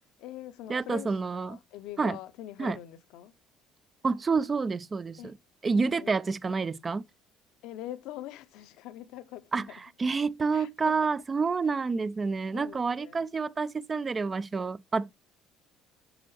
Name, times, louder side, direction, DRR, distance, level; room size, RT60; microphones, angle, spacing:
voice 1, 0.2-3.3 5.2-5.3 5.7-6.2 7.6-9.7 10.5-10.9 12.5-13.3, left 14 dB, 65° left, 0.6 m, -43 dB
voice 2, 0.7-1.6 2.0-2.2 2.6-2.8 4.0-5.3 5.6-7.0 9.5-9.7 10.0-15.2, right 4 dB, 30° right, 0.5 m, -28 dB
8.8 x 6.8 x 3.1 m
hypercardioid pair, 55°, 0 cm